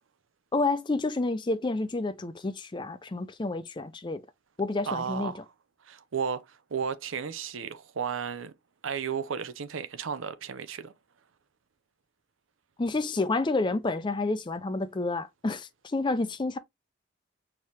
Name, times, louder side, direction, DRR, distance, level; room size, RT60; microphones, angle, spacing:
voice 1, 0.5-4.2 4.6-5.3 12.8-16.6, left 3 dB, 20° left, 0.4 m, -29 dB
voice 2, 4.9-5.4 5.8-8.5 8.8-10.9, right 6 dB, 75° right, 0.6 m, -33 dB
4.6 x 2.9 x 3.3 m
head